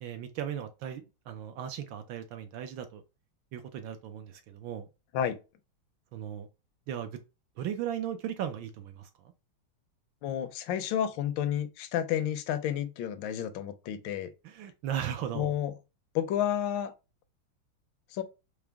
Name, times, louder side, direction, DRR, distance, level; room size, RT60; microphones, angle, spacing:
voice 1, 0.0-3.0 3.5-4.9 6.1-6.5 6.9-7.2 7.6-9.1 14.4-15.5, right 9 dB, 75° right, 1.2 m, -37 dB
voice 2, 10.2-14.3 15.3-15.7 16.1-16.9 18.1-18.2, left 10 dB, 75° left, 1.2 m, -31 dB
4.8 x 2.1 x 3.4 m
omnidirectional pair, 2.3 m